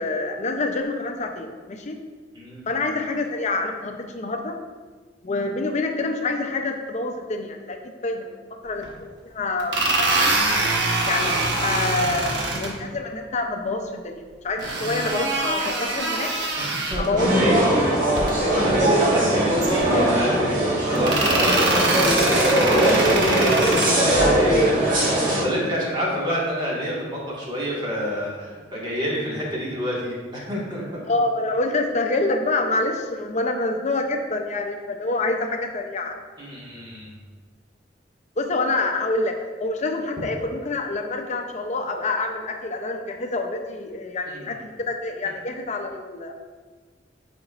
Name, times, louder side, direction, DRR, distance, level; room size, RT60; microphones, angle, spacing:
voice 1, 0.0-2.0 2.7-4.6 5.2-8.9 9.3-10.3 11.0-16.3 17.0-17.8 18.5-18.7 21.2-21.3 26.3-26.4 31.1-36.2 38.4-46.3, left 2 dB, 40° left, 4 dB, 0.6 m, -27 dB
voice 2, 2.3-2.7 14.6-14.8 16.6-17.2 18.3-31.0 36.4-37.2 44.3-44.6, equal, 25° right, -6 dB, 1.8 m, -29 dB
sound 1, 8.8-8.9 9.6-12.7 14.6-17.1 18.0-18.3 18.7-18.8 19.6-20.2 20.9-23.9, right 2 dB, 85° right, 1.1 m, -24 dB
sound 2, 17.2-25.4, right 1 dB, 50° right, 1.9 m, -20 dB
9.3 x 5.2 x 2.5 m, 1.4 s
head